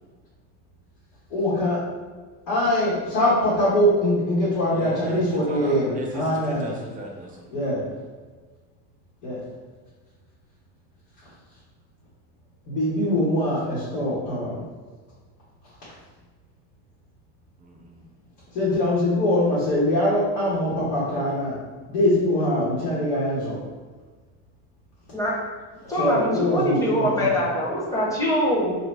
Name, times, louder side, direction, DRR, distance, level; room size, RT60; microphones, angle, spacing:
voice 1, 1.3-1.8 2.5-6.8 7.5-7.8 9.2-9.4 12.7-14.6 18.5-21.5 21.9-23.6 26.0-27.3, left 1 dB, 80° left, -10 dB, 1.4 m, -23 dB
voice 2, 4.7-7.5 17.6-18.1, right 1 dB, 20° right, 0 dB, 0.5 m, -36 dB
voice 3, 25.9-28.8, equal, 10° left, -5 dB, 0.7 m, -23 dB
2.8 x 2.5 x 3.3 m, 1.4 s
cardioid pair, 140°, 38 cm